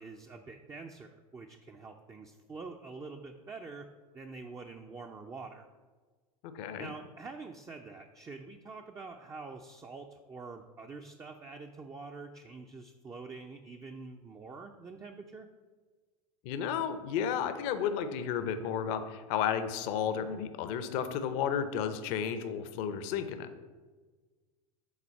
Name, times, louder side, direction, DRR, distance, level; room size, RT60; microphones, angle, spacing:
voice 1, 0.0-3.9 4.1-5.7 6.8-15.5, right 4 dB, 20° right, 3 dB, 0.4 m, -46 dB
voice 2, 6.4-6.9 16.4-23.5, left 8 dB, 55° left, 10 dB, 0.6 m, -33 dB
7.2 x 3.9 x 4.4 m, 1.4 s
figure-of-eight pair, 80°, 18 cm